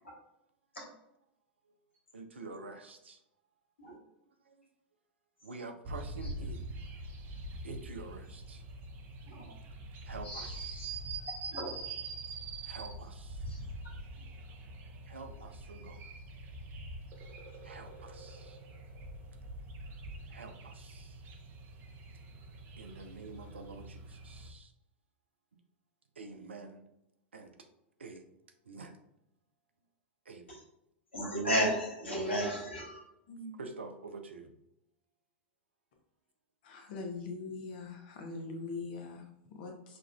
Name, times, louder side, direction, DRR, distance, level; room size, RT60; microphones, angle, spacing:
voice 1, 2.1-3.2 4.5-4.6 5.4-6.6 7.6-8.6 10.0-10.9 12.7-13.4 15.1-16.0 17.6-18.6 20.3-21.1 22.8-24.7 26.2-26.8 27.3-27.5 28.0-28.2 28.7-28.9 30.3-30.6 33.6-34.5, right 3 dB, 80° right, 6 dB, 0.5 m, -47 dB
sound 1, 5.9-24.5, right 2 dB, 35° right, 0.6 m, -44 dB
voice 2, 10.2-10.6 11.5-11.7 13.4-13.6 30.5-30.6 31.1-33.0, equal, 85° left, -4 dB, 1.3 m, -33 dB
voice 3, 36.6-40.0, left 3 dB, 55° left, 2 dB, 0.8 m, -42 dB
5.9 x 2.4 x 2.3 m, 0.85 s
figure-of-eight pair, 95°, 6 cm